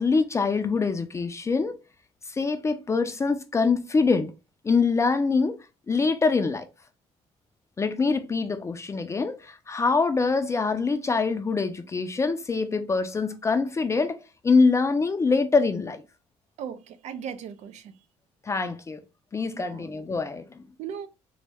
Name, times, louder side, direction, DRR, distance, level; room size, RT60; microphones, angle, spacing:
voice 1, 0.0-1.8 2.3-4.3 4.6-5.6 5.9-6.7 7.8-14.2 14.4-16.0 18.4-19.0 19.3-20.6, left 4 dB, 25° left, 0.4 m, -24 dB
voice 2, 16.6-18.0 19.5-20.0 20.8-21.1, right 8 dB, 65° right, 0.6 m, -37 dB
4.1 x 2.1 x 3.4 m
cardioid pair, 100°, 12 cm